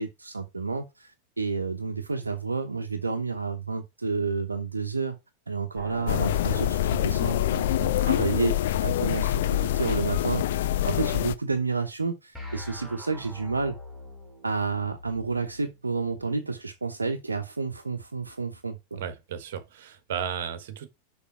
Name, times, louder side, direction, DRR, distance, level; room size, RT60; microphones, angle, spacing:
voice 1, 0.0-5.2 5.5-13.8 14.4-19.0, right 4 dB, 80° right, 0.9 m, -30 dB
sound 1, 6.1-11.3, left 13 dB, 55° left, 0.5 m, -25 dB
sound 2, 12.3-16.3, left 1 dB, 5° left, 3.2 m, -46 dB
voice 2, 19.0-20.9, right 8 dB, 55° right, 1.3 m, -34 dB
6.9 x 5.2 x 4.8 m
figure-of-eight pair, 90°, 0 cm